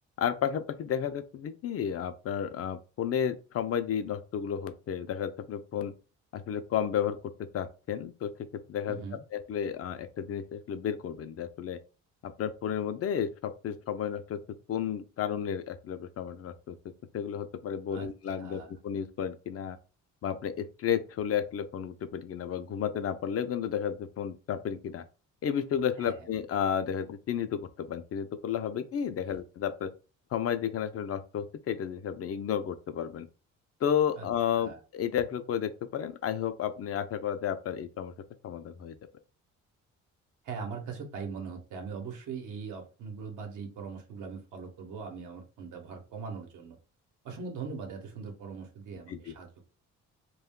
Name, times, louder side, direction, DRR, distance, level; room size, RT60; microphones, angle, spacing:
voice 1, 0.2-5.9 6.3-7.2 7.5-9.0 9.3-11.8 12.2-14.4 14.7-16.8 17.1-19.8 20.2-25.0 25.4-29.9 30.3-33.3 33.8-38.1 38.4-38.9 49.1-49.3, left 8 dB, 50° left, 0.5 m, -32 dB
voice 2, 8.9-9.2 17.9-18.1 18.4-18.7 26.0-26.3 29.2-29.4 34.1-34.3 34.6-34.8 40.4-46.8 47.2-49.7, right 5 dB, 80° right, 0.9 m, -41 dB
2.3 x 2.1 x 3.5 m
cardioid pair, 90°, 30 cm